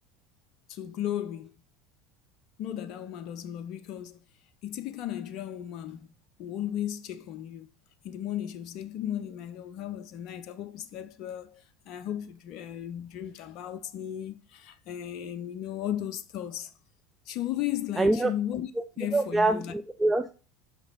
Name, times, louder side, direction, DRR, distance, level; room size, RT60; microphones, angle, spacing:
voice 1, 0.7-1.6 2.6-4.2 4.6-6.1 6.4-7.7 8.0-16.7 17.3-18.7 19.0-19.7, left 11 dB, 50° left, 0.5 m, -35 dB
voice 2, 18.0-18.3 19.1-20.3, right 2 dB, 10° right, 0.5 m, -24 dB
5.8 x 5.0 x 4.2 m
figure-of-eight pair, 70°, 0 cm